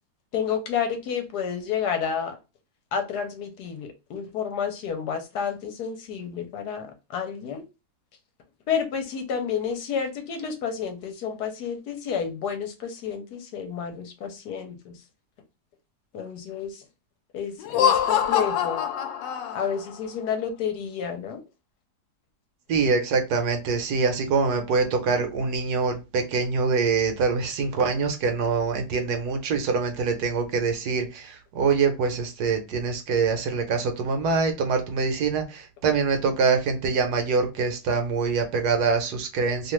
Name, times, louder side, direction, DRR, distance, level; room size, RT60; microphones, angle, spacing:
voice 1, 0.3-2.4 2.9-7.6 8.7-15.0 16.1-16.8 17.3-18.9 19.5-21.4, left 7 dB, 70° left, 1.2 m, -30 dB
Laughter, 17.6-19.9, left 9 dB, 90° left, 1.3 m, -24 dB
voice 2, 22.7-39.7, right 5 dB, 70° right, 1.2 m, -24 dB
2.9 x 2.4 x 3.1 m
omnidirectional pair, 1.9 m